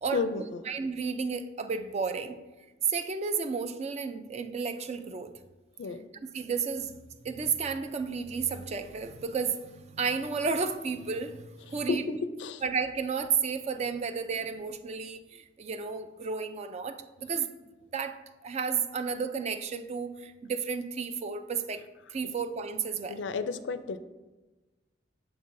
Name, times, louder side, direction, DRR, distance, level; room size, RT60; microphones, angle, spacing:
voice 1, 0.1-0.6 5.8-6.1 11.7-12.6 23.1-24.0, left 4 dB, 90° left, 11 dB, 0.4 m, -32 dB
voice 2, 0.7-2.4 2.9-5.3 6.3-6.9 7.2-12.0 12.6-17.5 17.9-21.8 22.1-23.2, right 5 dB, 35° right, 9 dB, 0.3 m, -32 dB
6.9 x 5.4 x 2.6 m, 1.2 s
head